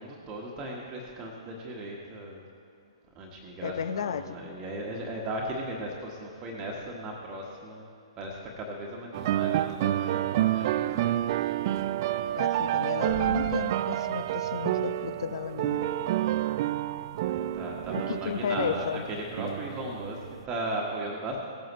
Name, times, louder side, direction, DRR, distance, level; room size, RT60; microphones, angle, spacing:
voice 1, 0.0-2.4 3.1-7.9 8.2-11.8 13.1-13.5 17.2-21.4, right 1 dB, 25° right, -2 dB, 1.4 m, -37 dB
voice 2, 3.6-4.4 12.4-15.9 18.1-19.0, left 7 dB, 55° left, 10 dB, 0.6 m, -33 dB
sound 1, 9.1-20.4, right 13 dB, 40° right, 0.3 m, -29 dB
17.5 x 9.2 x 3.1 m, 2.3 s
figure-of-eight pair, 120°, 3 cm